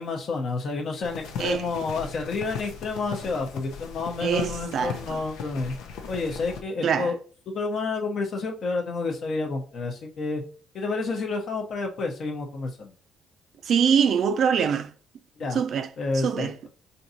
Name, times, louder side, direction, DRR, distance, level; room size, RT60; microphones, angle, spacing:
voice 1, 0.0-5.7 6.1-7.2 7.5-10.4 10.7-12.9 15.4-15.6 16.0-16.5, left 3 dB, 55° left, 0.8 m, -29 dB
sound 1, 1.0-6.6, left 6 dB, 85° left, 0.6 m, -38 dB
voice 2, 4.2-5.2 6.8-7.1 13.6-14.9 15.5-15.9 16.1-16.7, right 7 dB, 60° right, 0.4 m, -24 dB
4.5 x 2.7 x 2.7 m
cardioid pair, 100°, 0 cm